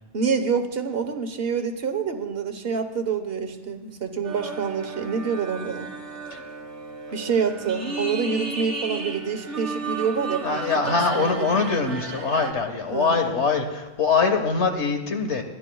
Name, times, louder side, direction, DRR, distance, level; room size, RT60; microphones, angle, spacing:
voice 1, 0.1-5.9 7.1-10.6 10.9-11.6 12.9-13.2, right 6 dB, 60° right, 7 dB, 1.3 m, -27 dB
sound 1, 4.2-12.5, right 3 dB, 90° right, 2.0 m, -34 dB
voice 2, 10.4-15.4, left 4 dB, 85° left, 5 dB, 1.7 m, -23 dB
30.0 x 11.5 x 2.3 m, 1.1 s
omnidirectional pair, 1.1 m